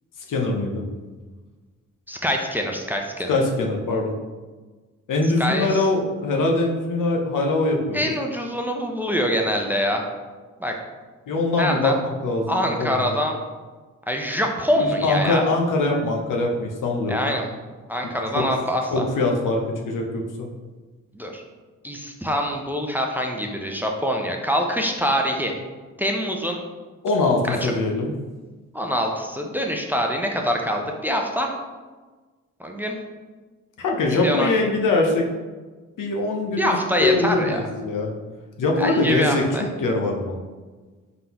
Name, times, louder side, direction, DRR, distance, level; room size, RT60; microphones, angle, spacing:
voice 1, 0.3-0.8 3.3-4.1 5.1-8.1 11.3-13.2 14.8-17.3 18.3-18.5 18.9-20.5 27.0-28.1 33.8-35.2 36.0-38.1 38.6-40.3, left 2 dB, 65° left, 1 dB, 0.8 m, -23 dB
voice 2, 2.1-3.4 5.4-5.8 7.9-10.0 10.6-10.7 11.6-12.0 12.5-13.4 14.1-15.5 17.1-17.5 17.9-19.0 21.1-21.4 21.8-25.5 26.0-26.6 27.4-27.7 28.7-31.5 32.6-33.0 34.1-34.5 36.6-37.6 38.7-39.6, equal, 5° right, 1 dB, 0.6 m, -24 dB
3.8 x 3.7 x 2.9 m, 1.3 s
supercardioid pair, 45°, 33 cm